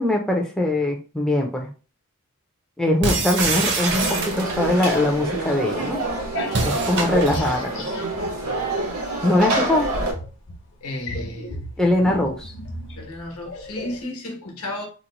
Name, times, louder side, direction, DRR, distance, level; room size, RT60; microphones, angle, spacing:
voice 1, 0.0-1.7 2.8-6.0 6.6-8.0 9.2-9.9 11.8-12.5, left 1 dB, 5° left, 0.4 m, -22 dB
sound 1, 3.0-4.7 6.5-7.6, right 3 dB, 50° right, 0.7 m, -25 dB
Conversation / Crowd, 3.9-10.1, right 2 dB, 85° right, 0.9 m, -27 dB
sound 2, 6.0-8.9 9.2-14.0, equal, 55° left, 0.7 m, -34 dB
voice 2, 10.8-11.5 12.1-12.4 12.9-14.9, left 1 dB, 80° left, 1.0 m, -33 dB
3.0 x 2.0 x 3.9 m
head